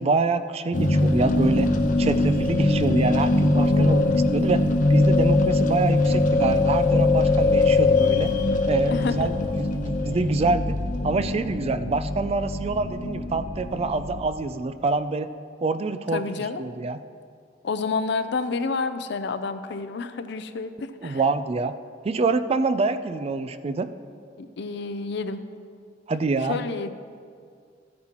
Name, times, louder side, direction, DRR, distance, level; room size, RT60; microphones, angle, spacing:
voice 1, 0.0-1.7 2.0-4.6 4.9-8.3 8.7-10.8 11.0-15.3 15.6-17.0 21.0-21.8 22.0-23.9 26.1-26.6, right 3 dB, 35° right, 11 dB, 0.3 m, -26 dB
sound 1, 0.7-14.2, left 2 dB, 45° left, 0.8 m, -22 dB
voice 2, 3.5-4.2 8.9-9.3 16.1-16.6 17.6-20.7 21.0-21.2 24.4-25.4 26.5-26.9, left 4 dB, 65° left, 10 dB, 0.5 m, -29 dB
14.0 x 9.4 x 3.0 m, 2.2 s
head